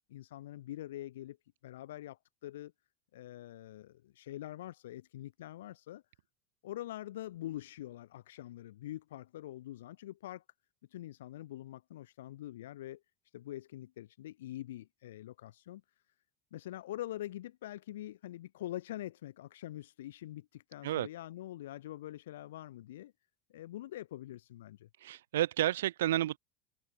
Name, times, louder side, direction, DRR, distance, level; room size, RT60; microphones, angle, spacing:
voice 1, 0.1-1.4 1.6-2.7 3.1-6.0 6.6-10.4 10.9-15.8 16.5-23.1 23.5-24.9, left 14 dB, 75° left, 5.8 m, -44 dB
voice 2, 25.0-26.4, right 13 dB, 80° right, 3.7 m, -31 dB
hypercardioid pair, 90°, 0 cm